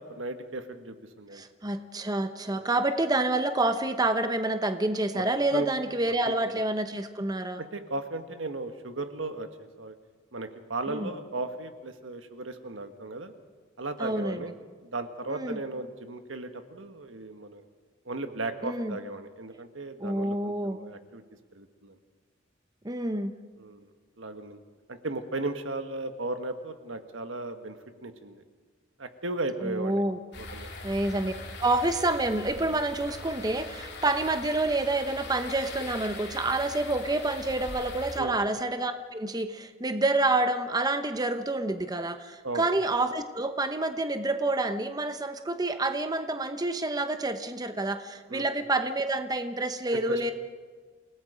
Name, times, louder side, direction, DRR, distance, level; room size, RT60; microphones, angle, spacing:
voice 1, 0.0-1.4 2.5-2.7 5.1-5.2 5.5-5.7 6.2-6.3 7.6-9.9 10.3-13.3 13.8-14.5 14.8-17.6 18.0-21.2 21.5-21.9 23.6-23.9 24.2-24.6 24.9-28.4 29.0-30.0 30.4-30.7 38.2-38.4 42.4-42.7 48.3-48.5 49.9-50.3, right 2 dB, 90° right, 8 dB, 1.6 m, -36 dB
voice 2, 1.3-7.6 10.9-11.1 14.0-14.5 15.3-15.6 18.6-19.0 20.0-20.8 22.8-23.3 29.6-30.2 30.8-31.3 31.6-50.3, right 2 dB, 20° right, 9 dB, 0.9 m, -28 dB
sound 1, 30.3-38.2, left 3 dB, 60° left, 3.3 m, -41 dB
28.5 x 18.0 x 5.1 m, 1.5 s
head